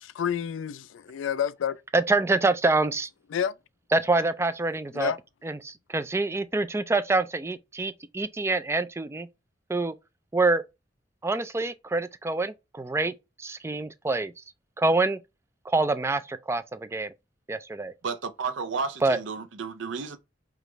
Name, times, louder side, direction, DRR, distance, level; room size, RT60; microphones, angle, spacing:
voice 1, 0.0-1.8 3.3-3.5 4.9-5.2, left 8 dB, 85° left, 0.3 m, -29 dB
voice 2, 1.9-3.1 3.9-5.1 5.4-9.3 9.7-9.9 10.3-10.6 11.2-13.1 13.4-14.3 14.8-15.2 15.7-17.1 17.5-17.9 19.0-19.2, right 3 dB, 15° right, 0.3 m, -26 dB
voice 3, 18.0-20.2, right 5 dB, 75° right, 0.5 m, -32 dB
5.0 x 2.4 x 3.1 m
head